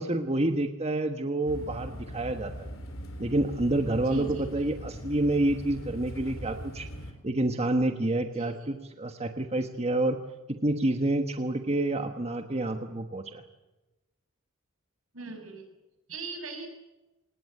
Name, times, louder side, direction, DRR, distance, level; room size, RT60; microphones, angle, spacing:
voice 1, 0.0-2.7 3.2-6.9 7.2-10.2 10.5-13.4, right 1 dB, 30° right, 6 dB, 1.4 m, -28 dB
sound 1, 1.5-7.1, equal, 65° left, 4.0 m, -40 dB
voice 2, 4.0-4.7 8.4-8.7 15.1-15.7 16.1-16.7, right 3 dB, 75° right, 5 dB, 6.9 m, -40 dB
27.0 x 19.5 x 7.9 m, 1.1 s
head